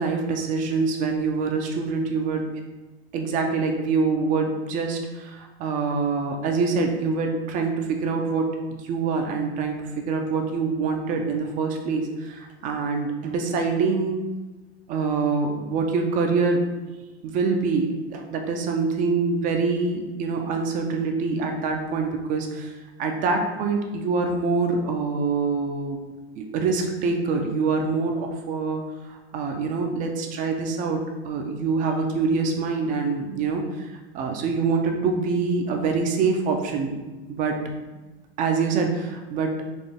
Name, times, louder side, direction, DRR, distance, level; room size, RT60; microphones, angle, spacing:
voice 1, 0.0-2.4 3.1-8.6 8.8-14.2 14.9-16.6 17.2-22.7 23.0-26.0 26.4-31.0 31.2-33.6 34.1-37.0 37.3-37.6 38.4-39.5, right 4 dB, 25° right, 3 dB, 0.4 m, -25 dB
4.2 x 2.4 x 3.3 m, 1.2 s
supercardioid pair, 140°, 32 cm